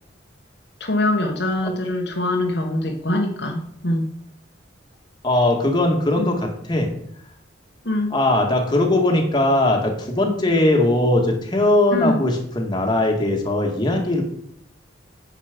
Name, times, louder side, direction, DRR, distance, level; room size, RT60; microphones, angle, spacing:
voice 1, 0.8-4.1 6.2-6.3 7.8-8.1 11.9-12.3, left 1 dB, 60° left, 1 dB, 1.3 m, -23 dB
voice 2, 5.2-6.9 8.1-14.2, left 1 dB, 25° left, 1 dB, 2.0 m, -20 dB
9.8 x 7.4 x 5.2 m, 0.68 s
head